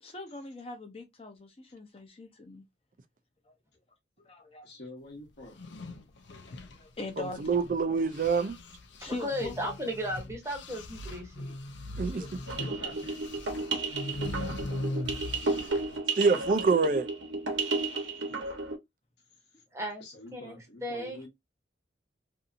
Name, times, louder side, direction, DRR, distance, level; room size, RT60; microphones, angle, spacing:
voice 1, 0.0-2.6 3.5-3.6 4.2-4.7 6.3-7.5 9.0-9.9 12.0-12.8 15.0-16.2 17.9-18.1, left 2 dB, 30° left, 0.7 m, -43 dB
voice 2, 4.6-5.6 12.6-12.9 14.2-14.6 19.5-19.6 20.0-21.3, left 1 dB, 60° left, 1.0 m, -46 dB
sound 1, 5.4-7.8 8.1-16.0, left 1 dB, 75° left, 0.5 m, -40 dB
voice 3, 7.4-8.6 12.0-12.2 16.2-17.1, right 4 dB, 45° right, 0.4 m, -25 dB
voice 4, 9.0-11.5 19.7-20.0 20.3-20.5 20.8-21.2, equal, 15° right, 0.9 m, -35 dB
sound 2, 12.5-18.8, right 3 dB, 80° right, 1.0 m, -33 dB
2.7 x 2.7 x 2.5 m
head